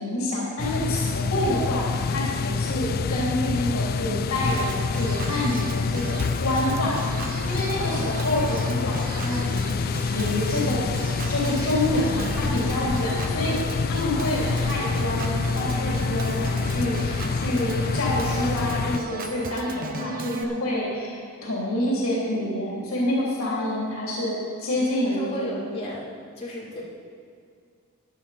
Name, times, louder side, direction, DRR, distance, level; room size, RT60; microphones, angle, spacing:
voice 1, 0.0-10.8 11.3-25.5, left 1 dB, 75° left, -5 dB, 3.2 m, -28 dB
sound 1, 0.6-19.0, left 5 dB, 45° left, 0.3 m, -27 dB
voice 2, 2.6-3.1 7.8-8.3 19.9-20.8 23.4-23.8 25.0-26.1 26.4-26.8, equal, 30° left, -7 dB, 3.5 m, -35 dB
Organ, 4.4-20.4, right 3 dB, 45° right, 0.9 m, -36 dB
15.5 x 10.5 x 4.3 m, 2.3 s
head